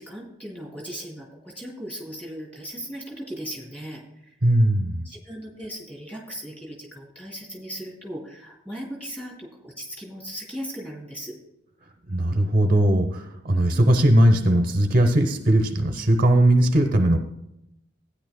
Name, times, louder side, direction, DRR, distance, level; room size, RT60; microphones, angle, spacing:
voice 1, 0.0-4.4 5.0-11.3, equal, 5° left, -2 dB, 2.8 m, -37 dB
voice 2, 4.4-5.1 12.1-17.2, right 1 dB, 45° right, 4 dB, 0.8 m, -19 dB
15.5 x 9.9 x 2.2 m, 0.85 s
head